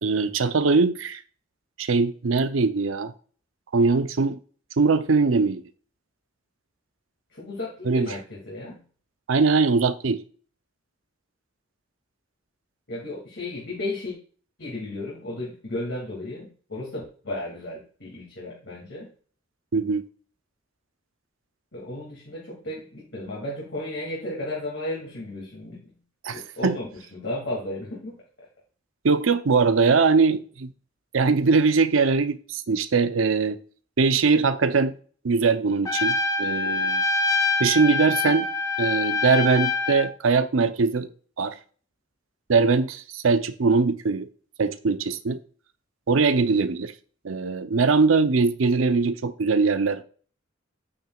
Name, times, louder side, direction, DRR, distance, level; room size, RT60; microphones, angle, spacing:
voice 1, 0.0-1.2 1.8-3.1 3.7-4.4 4.8-5.6 7.9-8.1 9.3-10.2 19.7-20.1 26.2-26.8 29.0-30.7 31.1-33.6 34.0-34.9 35.2-37.0 37.6-38.5 38.8-41.1 41.4-41.5 42.5-44.3 44.6-45.4 46.1-46.9 47.2-50.0, right 4 dB, 85° right, 11 dB, 0.7 m, -21 dB
voice 2, 7.3-8.8 12.9-14.1 14.6-19.1 21.7-25.9 26.3-28.2, left 1 dB, 65° left, -5 dB, 2.5 m, -34 dB
Trumpet, 35.8-40.1, left 3 dB, 15° left, 0.6 m, -25 dB
9.0 x 8.6 x 2.4 m, 0.43 s
head